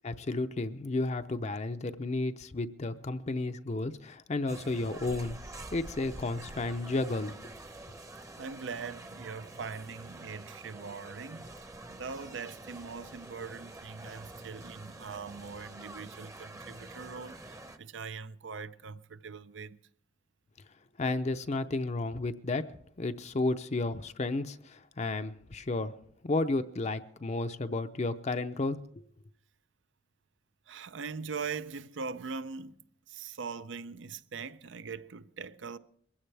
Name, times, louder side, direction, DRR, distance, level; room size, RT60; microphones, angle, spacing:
voice 1, 0.0-5.4 5.7-7.4 21.0-25.9 26.2-28.8, left 2 dB, 35° left, 0.6 m, -32 dB
sound 1, 4.5-17.8, right 2 dB, 15° right, 0.8 m, -47 dB
voice 2, 8.4-19.8 30.7-35.8, right 5 dB, 80° right, 0.6 m, -41 dB
22.0 x 16.0 x 3.4 m
head